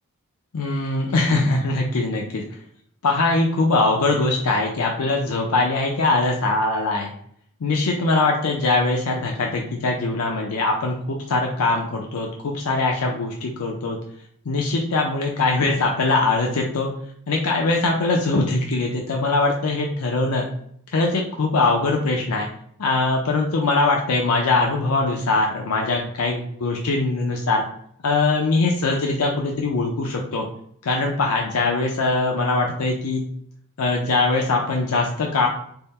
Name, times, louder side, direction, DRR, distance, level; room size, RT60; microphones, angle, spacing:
voice 1, 0.5-2.4 3.0-7.1 7.6-14.0 14.5-16.9 17.3-20.4 20.9-22.5 22.8-27.6 28.0-30.5 30.8-33.2 33.8-35.5, left 3 dB, 85° left, 0 dB, 0.5 m, -22 dB
3.6 x 2.1 x 4.2 m, 0.65 s
head